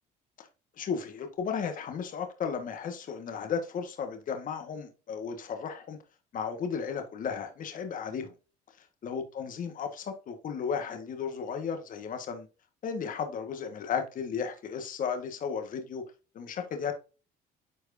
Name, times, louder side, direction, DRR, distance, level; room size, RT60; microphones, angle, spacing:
voice 1, 0.7-6.0 6.3-8.3 8.8-12.5 12.8-16.0 16.3-16.9, left 6 dB, 55° left, 1.6 m, -34 dB
9.8 x 4.7 x 2.7 m
cardioid pair, 110°, 17 cm